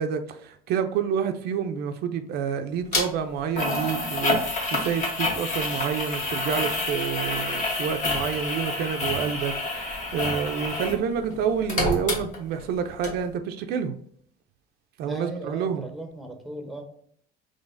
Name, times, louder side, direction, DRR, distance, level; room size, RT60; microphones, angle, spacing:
voice 1, 0.0-14.0 15.0-15.9, right 7 dB, 60° right, 7 dB, 0.4 m, -28 dB
sound 1, 2.9-3.0 3.6-11.0 11.3-12.7 13.0-13.1, left 2 dB, 45° left, 1.2 m, -28 dB
voice 2, 15.0-16.8, right 1 dB, ahead, 4 dB, 0.7 m, -37 dB
3.9 x 3.2 x 2.5 m, 0.64 s
cardioid pair, 115°, 18 cm